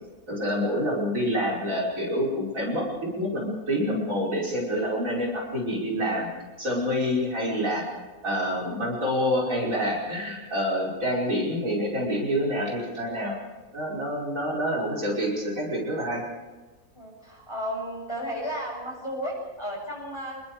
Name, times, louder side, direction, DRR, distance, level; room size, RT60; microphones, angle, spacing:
voice 1, 0.3-2.9 3.1-6.3 6.6-13.4 13.7-16.2, equal, 60° right, -2 dB, 5.8 m, -27 dB
voice 2, 17.0-20.4, equal, 20° left, -1 dB, 7.4 m, -34 dB
28.5 x 21.0 x 4.8 m, 1.2 s
omnidirectional pair, 1.6 m